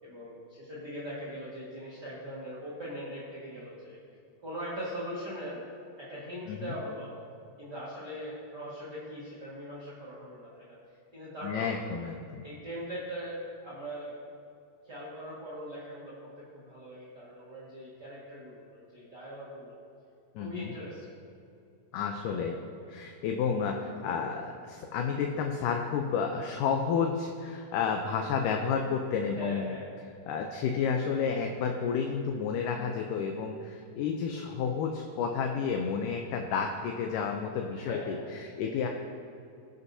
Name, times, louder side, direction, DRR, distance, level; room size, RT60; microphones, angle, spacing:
voice 1, 0.0-4.0 4.4-5.7 6.0-7.1 7.6-11.8 12.4-14.2 14.8-19.8 20.4-21.1 22.3-22.5 23.9-24.0 29.3-29.9 30.3-30.6 34.3-34.7 37.8-38.4, equal, 35° right, -8 dB, 1.9 m, -41 dB
voice 2, 11.4-12.4 20.4-20.7 21.9-22.6 22.9-29.8 30.3-38.9, left 6 dB, 75° left, 3 dB, 2.1 m, -31 dB
19.5 x 8.1 x 2.7 m, 2.6 s
omnidirectional pair, 4.1 m